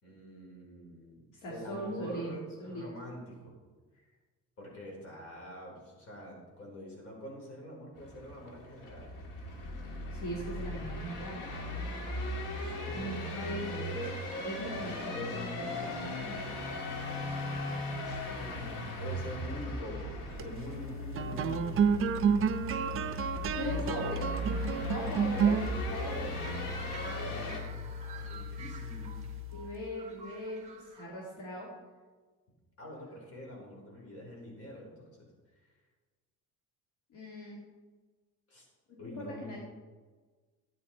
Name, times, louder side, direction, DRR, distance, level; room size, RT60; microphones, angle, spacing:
voice 1, 0.0-3.6 4.6-9.1 11.4-13.1 19.0-20.1 20.4-21.9 23.7-24.2 24.6-25.2 28.0-29.2 32.8-35.3 35.6-35.7 38.5-38.7 39.0-39.6, left 1 dB, 45° left, -1 dB, 4.2 m, -45 dB
voice 2, 1.3-2.8 10.1-11.4 12.9-16.4 23.5-24.2 24.8-25.6 25.9-26.3 29.5-31.7 37.1-37.6 38.9-39.6, equal, 70° left, -3 dB, 2.4 m, -40 dB
sound 1, 8.0-27.6, left 1 dB, 85° left, 2.2 m, -38 dB
sound 2, 20.2-29.8, right 5 dB, 45° right, 0.6 m, -32 dB
sound 3, 25.8-31.0, right 6 dB, 20° right, 1.6 m, -50 dB
13.0 x 9.3 x 4.4 m, 1.4 s
cardioid pair, 160°, 31 cm